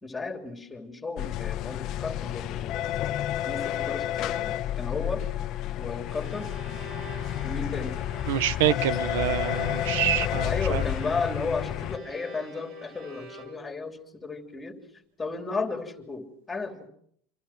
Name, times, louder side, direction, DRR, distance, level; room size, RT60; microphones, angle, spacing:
voice 1, 0.0-2.8 3.4-5.3 5.8-6.5 7.4-8.0 10.4-14.8 15.2-16.9, left 4 dB, 10° left, 5 dB, 3.2 m, -34 dB
sound 1, 1.2-12.0, left 12 dB, 40° left, 1.1 m, -30 dB
Bowed string instrument, 5.9-13.9, right 2 dB, 40° right, 5.7 m, -46 dB
voice 2, 8.3-10.8, right 12 dB, 80° right, 16 dB, 1.0 m, -26 dB
27.5 x 26.0 x 6.1 m, 0.66 s
supercardioid pair, 165°, 0 cm